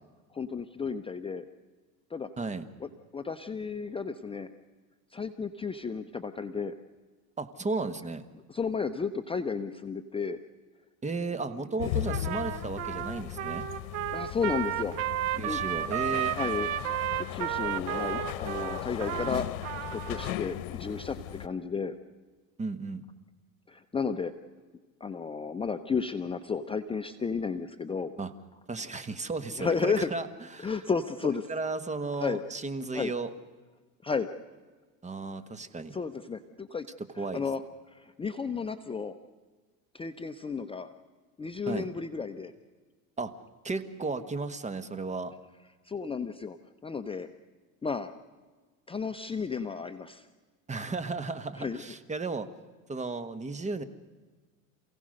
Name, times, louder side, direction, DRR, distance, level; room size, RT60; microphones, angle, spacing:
voice 1, 0.3-1.4 2.1-2.3 2.8-4.5 5.1-6.7 8.5-10.4 11.8-11.9 14.1-15.0 15.4-15.6 16.3-16.7 17.3-19.5 19.9-21.9 23.7-24.3 25.0-28.1 29.6-30.1 30.6-31.4 32.2-32.4 32.9-33.1 34.0-34.3 35.9-36.9 37.2-37.6 37.9-39.2 39.9-40.9 41.4-42.5 45.9-46.6 46.8-47.3 47.8-48.1 48.9-50.3 51.6-51.8, left 5 dB, 15° left, 7 dB, 0.8 m, -33 dB
voice 2, 7.4-8.2 11.0-13.7 15.4-16.4 22.6-23.0 28.2-28.3 28.7-30.3 30.5-30.8 31.5-33.3 35.0-36.0 37.2-37.4 41.7-41.9 43.2-43.3 43.6-45.3 50.7-52.5 52.9-53.8, right 3 dB, 15° right, 11 dB, 1.3 m, -34 dB
sound 1, 11.8-21.5, left 14 dB, 80° left, 1.1 m, -37 dB
Trumpet, 12.1-20.4, right 13 dB, 80° right, 1.4 m, -33 dB
28.0 x 17.0 x 6.5 m, 1.4 s
supercardioid pair, 115°, 41 cm